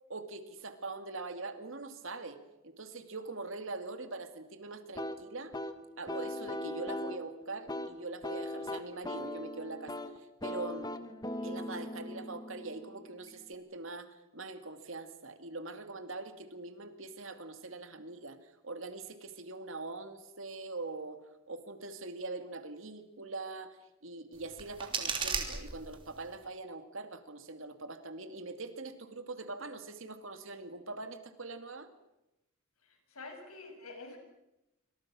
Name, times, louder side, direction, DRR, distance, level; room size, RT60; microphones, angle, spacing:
voice 1, 0.1-5.5 6.0-10.9 11.4-18.4 18.6-21.2 21.5-23.8 24.0-31.9, right 3 dB, 65° right, 8 dB, 2.5 m, -43 dB
sound 1, 5.0-13.5, left 1 dB, 20° left, 1.5 m, -40 dB
sound 2, 24.3-26.3, right 5 dB, 25° right, 3.2 m, -36 dB
voice 2, 32.8-34.2, left 3 dB, 85° left, 4 dB, 6.8 m, -47 dB
27.5 x 25.0 x 6.3 m, 0.91 s
head